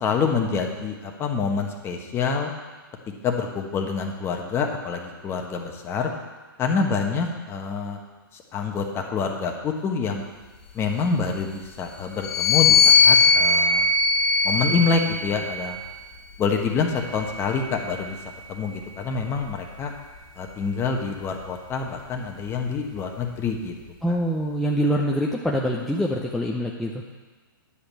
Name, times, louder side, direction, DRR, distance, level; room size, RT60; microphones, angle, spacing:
voice 1, 0.0-2.5 3.2-6.1 6.6-8.0 8.5-10.2 10.7-13.9 14.4-15.8 16.4-18.2 18.5-19.9 20.4-23.7 24.1-24.2, left 5 dB, 20° left, 2 dB, 1.2 m, -26 dB
sound 1, 12.2-15.8 16.6-18.2, left 4 dB, 40° left, 1.8 m, -20 dB
voice 2, 24.0-26.9, equal, ahead, -3 dB, 0.6 m, -24 dB
9.9 x 5.1 x 7.3 m, 1.3 s
hypercardioid pair, 135°, 12 cm